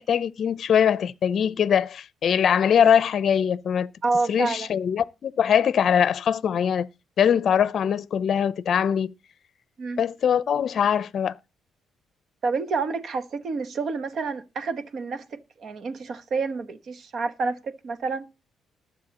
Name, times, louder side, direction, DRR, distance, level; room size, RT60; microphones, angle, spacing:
voice 1, 0.0-3.9 4.3-6.9 7.2-9.1 10.0-11.3, left 8 dB, 60° left, 0.5 m, -22 dB
voice 2, 4.0-4.7 9.8-10.0 12.4-18.3, right 4 dB, 55° right, 1.2 m, -29 dB
20.0 x 7.3 x 2.9 m
cardioid pair, 90°, 0 cm